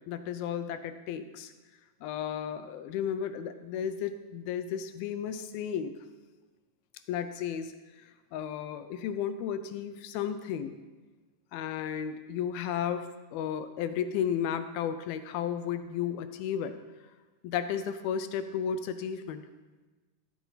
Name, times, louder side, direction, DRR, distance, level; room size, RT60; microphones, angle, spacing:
voice 1, 0.1-1.5 2.0-6.0 7.1-10.8 11.5-16.8 17.4-19.4, left 8 dB, 80° left, 10 dB, 2.3 m, -33 dB
15.0 x 13.0 x 4.0 m, 1.2 s
omnidirectional pair, 4.8 m